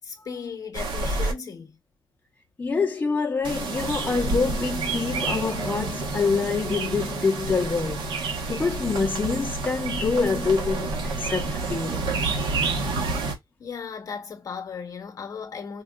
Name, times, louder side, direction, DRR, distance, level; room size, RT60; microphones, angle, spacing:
voice 1, 0.0-1.8 13.6-15.8, left 6 dB, 45° left, 0.9 m, -36 dB
sound 1, 0.7-1.3 3.4-13.3, right 3 dB, 75° right, 1.0 m, -29 dB
voice 2, 2.6-12.0, left 4 dB, 20° left, 0.7 m, -26 dB
4.5 x 2.3 x 2.3 m
cardioid pair, 130°, 8 cm